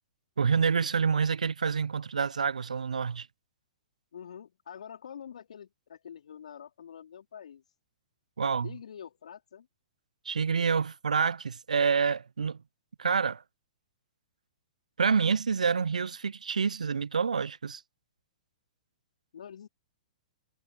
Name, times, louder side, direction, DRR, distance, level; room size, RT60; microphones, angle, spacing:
voice 1, 0.4-3.3 8.4-8.7 10.3-12.6 13.0-13.4 15.0-17.8, right 5 dB, 75° right, 0.6 m, -27 dB
voice 2, 4.1-7.6 8.4-9.7 19.3-19.7, left 8 dB, 65° left, 4.2 m, -46 dB
figure-of-eight pair, 115°, 4 cm